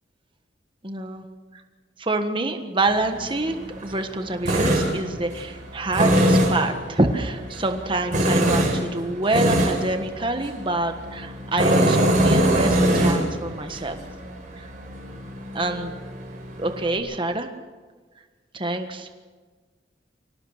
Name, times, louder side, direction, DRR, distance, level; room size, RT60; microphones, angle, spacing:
voice 1, 0.8-1.2 2.0-14.0 14.6-14.7 15.5-15.9 16.6-17.5 18.5-19.1, right 2 dB, 30° right, 6 dB, 1.5 m, -26 dB
Tools, 2.9-17.0, right 1 dB, 45° right, 4.8 m, -24 dB
24.5 x 18.0 x 6.6 m, 1.4 s
head